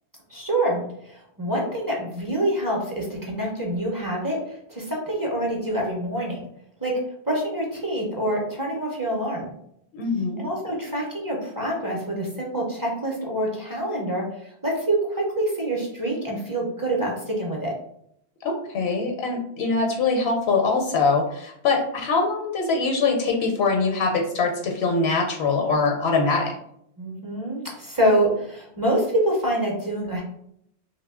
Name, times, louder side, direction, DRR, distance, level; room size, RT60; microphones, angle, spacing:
voice 1, 0.3-6.4 6.8-7.0 7.3-9.5 10.4-17.7 27.0-30.2, right 1 dB, 25° right, -3 dB, 0.5 m, -26 dB
voice 2, 9.9-10.4 18.4-26.6, left 4 dB, 75° left, 2 dB, 0.8 m, -23 dB
2.7 x 2.1 x 3.5 m, 0.72 s
omnidirectional pair, 1.1 m